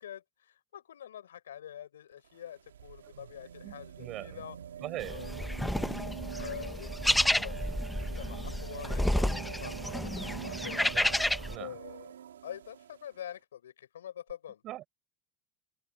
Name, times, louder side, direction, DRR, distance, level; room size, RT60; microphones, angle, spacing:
voice 1, 0.0-4.6 5.0-5.3 6.4-7.7 8.0-10.8 11.5-12.1 12.4-14.6, left 10 dB, 85° left, 4.9 m, -46 dB
sound 1, 2.1-13.1 14.3-14.4, right 9 dB, 85° right, 2.2 m, -44 dB
voice 2, 3.6-4.4 4.8-5.3 10.8-11.2 11.4-11.7 14.6-14.9, right 15 dB, 50° right, 6.0 m, -41 dB
sound 2, 5.0-11.5, left 1 dB, 5° left, 1.3 m, -31 dB
hypercardioid pair, 80°, 0 cm